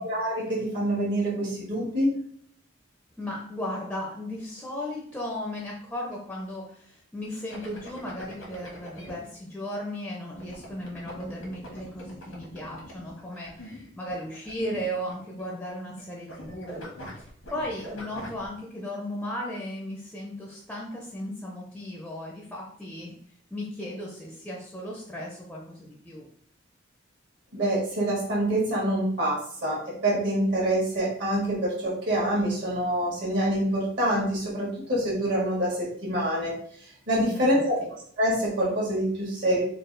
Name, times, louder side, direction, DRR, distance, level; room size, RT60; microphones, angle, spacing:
voice 1, 0.0-2.2 27.5-36.5 36.8-37.8 38.2-39.6, right 1 dB, 55° right, -5 dB, 1.4 m, -26 dB
voice 2, 3.2-16.8 17.2-23.1 23.5-26.3 37.2-37.6, left 1 dB, 5° left, -2 dB, 0.6 m, -36 dB
sound 1, 7.5-9.1 10.3-16.0 16.3-18.5, equal, 90° left, 1.3 m, -43 dB
3.9 x 2.4 x 3.9 m, 0.62 s
head